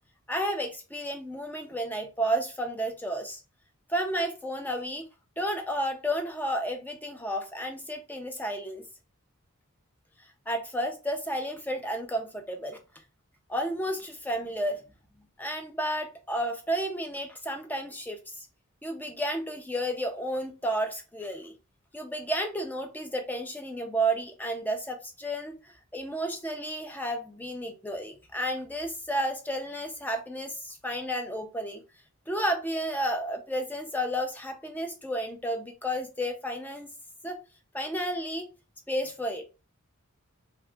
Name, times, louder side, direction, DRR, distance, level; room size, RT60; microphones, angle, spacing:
voice 1, 0.3-3.4 3.9-5.0 5.4-8.9 10.5-12.8 13.5-14.8 15.4-18.5 18.8-21.5 21.9-31.8 32.3-36.9 37.2-37.4 37.7-38.5 38.9-39.5, right 1 dB, 10° left, 0.4 m, -32 dB
2.8 x 2.3 x 3.3 m
head